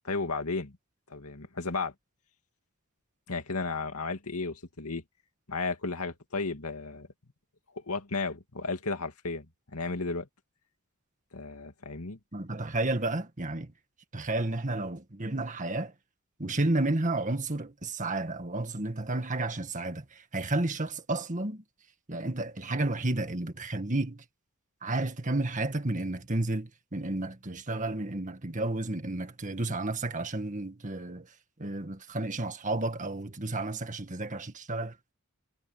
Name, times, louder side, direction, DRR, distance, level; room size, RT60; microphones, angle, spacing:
voice 1, 0.0-0.7 1.1-1.9 3.3-5.0 5.5-7.1 7.9-9.5 9.7-10.3 11.3-12.2, left 3 dB, 85° left, 2.3 m, -33 dB
voice 2, 12.3-13.7 14.1-15.9 16.4-21.6 22.1-24.2 24.8-31.3 31.6-35.1, right 2 dB, 35° right, 1.8 m, -31 dB
head